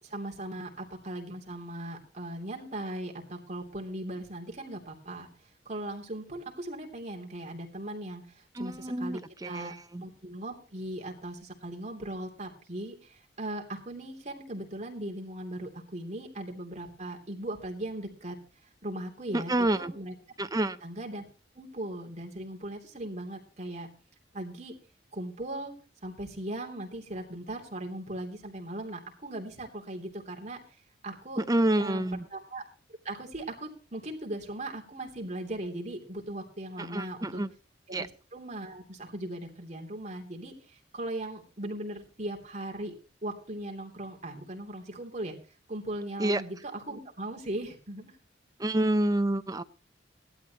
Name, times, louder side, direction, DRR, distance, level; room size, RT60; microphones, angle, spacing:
voice 1, 0.0-5.3 5.6-18.4 18.8-20.1 20.8-21.2 21.5-23.9 24.3-24.7 25.1-25.7 26.0-30.6 31.0-31.4 31.8-32.0 32.3-32.6 33.0-37.4 37.9-42.9 43.2-45.4 45.7-48.1, right 1 dB, 40° right, 3.0 m, -38 dB
voice 2, 8.5-10.0 19.3-19.9 20.4-20.8 31.4-32.3 36.8-37.5 37.9-38.1 46.2-46.4 48.6-49.6, right 1 dB, 20° right, 0.7 m, -28 dB
17.5 x 12.0 x 3.0 m
head